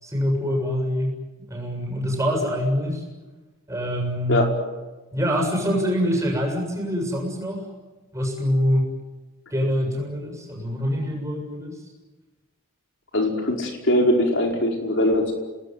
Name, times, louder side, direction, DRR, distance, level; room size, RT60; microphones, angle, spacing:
voice 1, 0.0-1.1 1.5-3.0 3.7-4.5 5.1-7.6 8.1-8.9 9.5-11.7, equal, 15° right, 1 dB, 7.2 m, -25 dB
voice 2, 13.1-15.3, left 1 dB, 60° left, 2 dB, 5.1 m, -21 dB
28.0 x 19.5 x 9.6 m, 1.2 s
head